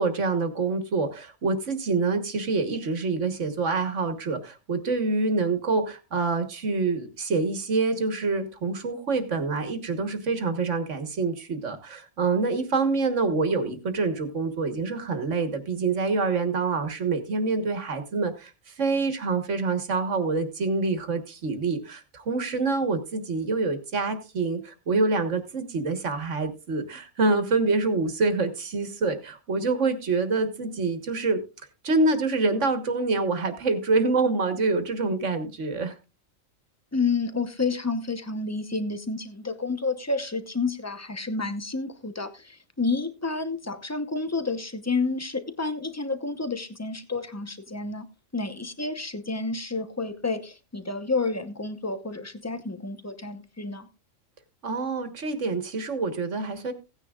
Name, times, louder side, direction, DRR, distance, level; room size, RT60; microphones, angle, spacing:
voice 1, 0.0-31.4 31.8-35.9 54.6-56.7, right 3 dB, 60° right, 8 dB, 1.7 m, -26 dB
voice 2, 36.9-48.1 48.3-53.9, left 3 dB, 15° left, 10 dB, 0.8 m, -30 dB
16.5 x 9.8 x 2.4 m, 0.29 s
omnidirectional pair, 1.4 m